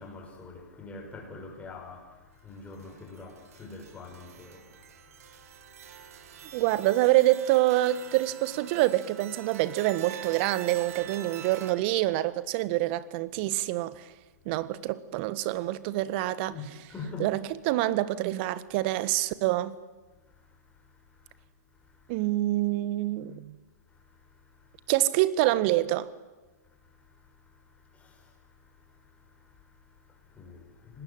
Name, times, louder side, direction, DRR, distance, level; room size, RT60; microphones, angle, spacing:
voice 1, 0.0-6.6 16.5-17.3 20.3-21.4 21.7-22.2 23.9-24.9 26.7-31.0, left 3 dB, 15° left, 6.7 m, -47 dB
sound 1, 2.8-11.7, right 9 dB, 60° right, 2.6 m, -45 dB
voice 2, 6.5-14.0 14.4-16.5 17.2-17.4 17.6-19.7 22.1-23.5 24.9-26.1, right 16 dB, 40° right, 1.5 m, -26 dB
25.5 x 20.0 x 9.0 m
hypercardioid pair, 125°, 9 cm